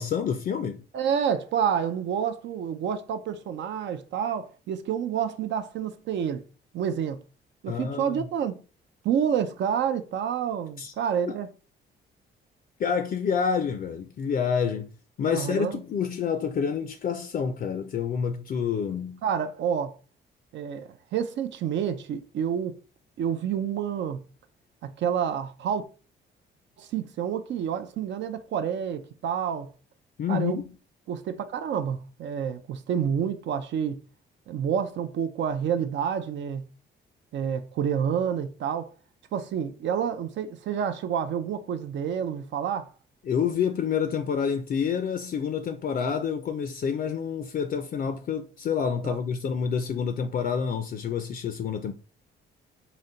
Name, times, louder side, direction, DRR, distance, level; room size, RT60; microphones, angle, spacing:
voice 1, 0.0-0.8 7.7-8.2 10.8-10.9 11.3-11.4 12.8-14.9 15.2-19.2 30.2-30.7 43.2-51.9, left 7 dB, 45° left, 0.4 m, -28 dB
voice 2, 0.9-6.4 6.7-7.2 7.6-8.5 9.0-11.5 15.3-15.8 19.2-20.0 20.5-22.8 23.2-24.2 25.0-25.8 26.8-29.7 30.3-30.6 31.1-34.0 34.5-36.6 37.3-38.9 39.3-42.9 49.0-49.2, right 8 dB, 65° right, 0.4 m, -28 dB
3.9 x 2.1 x 3.7 m
cardioid pair, 90°, 20 cm